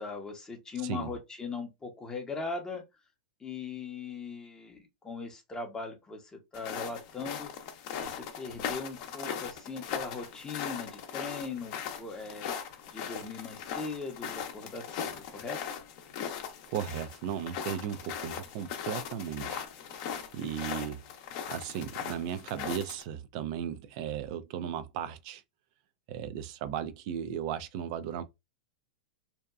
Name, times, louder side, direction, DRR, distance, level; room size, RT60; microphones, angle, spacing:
voice 1, 0.0-2.8 3.4-7.5 8.0-12.5 12.9-15.6, left 4 dB, 15° left, 0.7 m, -39 dB
voice 2, 0.8-1.1 16.7-21.0 21.5-25.4 26.1-28.2, right 9 dB, 50° right, 0.4 m, -36 dB
sound 1, 6.5-23.0, left 8 dB, 50° left, 0.7 m, -39 dB
2.7 x 2.2 x 2.3 m
hypercardioid pair, 115°, 5 cm